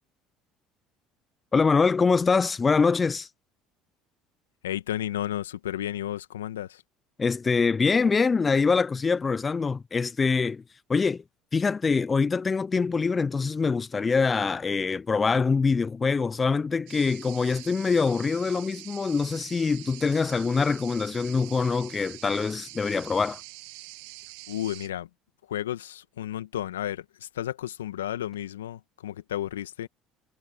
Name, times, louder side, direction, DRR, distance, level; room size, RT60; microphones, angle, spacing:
voice 1, 1.5-3.3 7.2-10.6 10.9-11.2 11.5-23.4, left 4 dB, 25° left, 0.7 m, -24 dB
voice 2, 4.6-6.8 24.5-25.1 25.5-29.9, left 12 dB, 85° left, 1.9 m, -32 dB
sound 1, 16.9-24.9, right 27 dB, 70° right, 1.8 m, -45 dB
hypercardioid pair, 65°, 0 cm